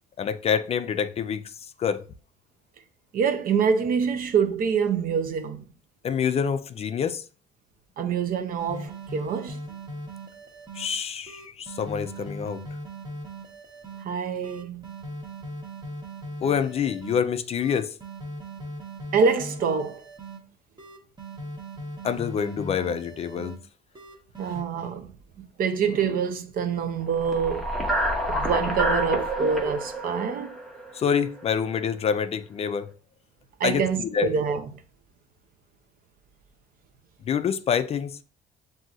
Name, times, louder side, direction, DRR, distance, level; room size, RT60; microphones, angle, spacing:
voice 1, 0.2-1.5 1.8-2.1 6.0-7.2 10.7-12.6 16.4-17.9 22.0-23.6 30.9-32.9 33.6-34.3 37.3-38.2, left 7 dB, 35° left, 0.4 m, -26 dB
voice 2, 3.1-5.6 8.0-9.6 14.0-14.9 19.1-20.0 24.4-25.1 25.4-27.8 28.3-30.6 33.6-34.6, right 6 dB, 55° right, 0.7 m, -26 dB
sound 1, 8.6-10.9 11.3-14.0 14.4-17.2 17.6-20.4 20.8-23.6 24.0-24.6, right 1 dB, 25° right, 1.3 m, -39 dB
sound 2, 27.1-31.4, right 1 dB, ahead, 0.9 m, -28 dB
7.5 x 2.7 x 2.4 m
cardioid pair, 110°, 17 cm